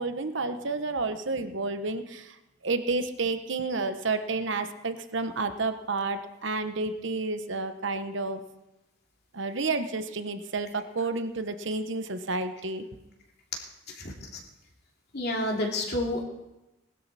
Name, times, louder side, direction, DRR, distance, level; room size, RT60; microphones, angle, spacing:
voice 1, 0.0-2.3 2.6-8.4 9.3-12.8, right 3 dB, 65° right, 9 dB, 1.1 m, -30 dB
voice 2, 15.1-16.2, left 1 dB, 55° left, 0 dB, 2.8 m, -29 dB
19.5 x 12.5 x 4.2 m, 1.0 s
head